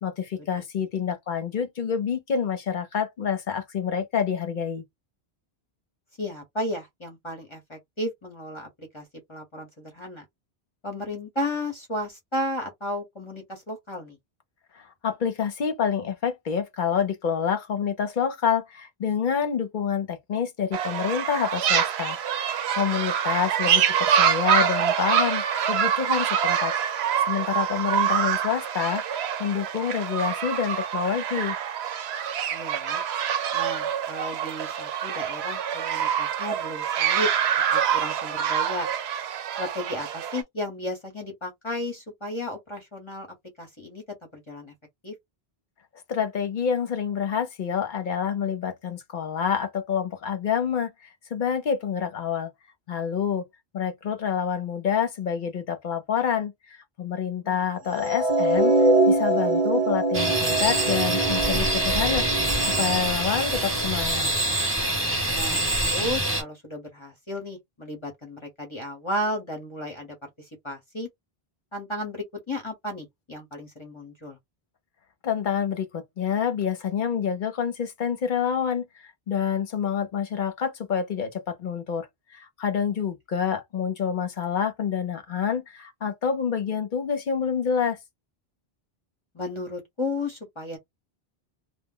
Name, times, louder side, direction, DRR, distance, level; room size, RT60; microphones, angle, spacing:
voice 1, 0.0-4.8 14.8-22.2 22.7-26.7 27.2-31.6 46.1-52.5 52.9-53.4 53.7-58.7 59.1-64.3 75.2-82.1 82.3-88.0, left 7 dB, 55° left, 0.8 m, -27 dB
voice 2, 6.2-10.2 10.8-14.2 32.5-33.0 33.5-37.3 37.7-38.9 39.6-43.3 43.6-44.0 44.3-44.7 45.0-45.1 57.4-57.6 65.3-71.1 71.7-74.4 89.3-90.8, left 1 dB, 30° left, 0.9 m, -34 dB
sound 1, 20.7-40.4, right 8 dB, 90° right, 0.8 m, -26 dB
sound 2, 57.9-64.2, right 2 dB, 45° right, 1.0 m, -24 dB
sound 3, 60.1-66.4, right 1 dB, 15° right, 0.8 m, -25 dB
2.2 x 2.1 x 3.6 m
omnidirectional pair, 1.0 m